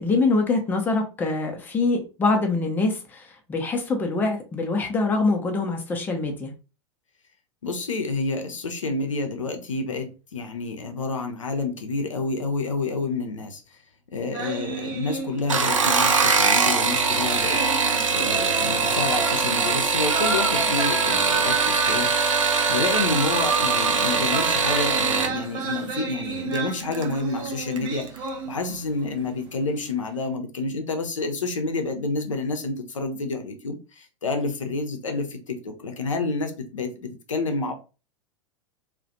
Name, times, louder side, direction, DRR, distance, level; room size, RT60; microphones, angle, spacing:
voice 1, 0.0-6.5, left 3 dB, 10° left, 0.5 m, -24 dB
voice 2, 7.6-13.6 14.1-17.6 18.1-22.1 22.7-28.1 28.4-37.7, left 3 dB, 75° left, 0.5 m, -29 dB
sound 1, 14.3-15.7 16.0-16.1 17.4-28.9 29.2-29.5, right 4 dB, 25° right, 0.8 m, -30 dB
sound 2, 15.4-25.3 26.5-27.0 27.5-27.9 28.2-28.3, right 5 dB, 75° right, 0.4 m, -22 dB
2.3 x 2.1 x 2.6 m
figure-of-eight pair, 95°, 17 cm